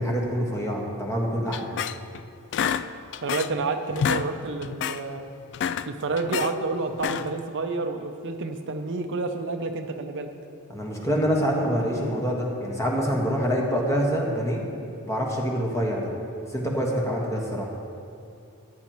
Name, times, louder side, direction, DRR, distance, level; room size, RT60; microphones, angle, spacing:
voice 1, 0.0-1.7 10.7-14.6 15.0-16.1 16.5-17.7, equal, 15° left, -2 dB, 1.5 m, -26 dB
sound 1, 1.5-2.2 2.5-3.6 3.9-4.3 4.6-5.0 5.4-6.5 6.9-7.4, left 8 dB, 55° left, 0.3 m, -28 dB
voice 2, 3.2-5.2 5.9-10.3, right 3 dB, 55° right, 6 dB, 0.6 m, -29 dB
14.0 x 10.5 x 3.0 m, 2.7 s
head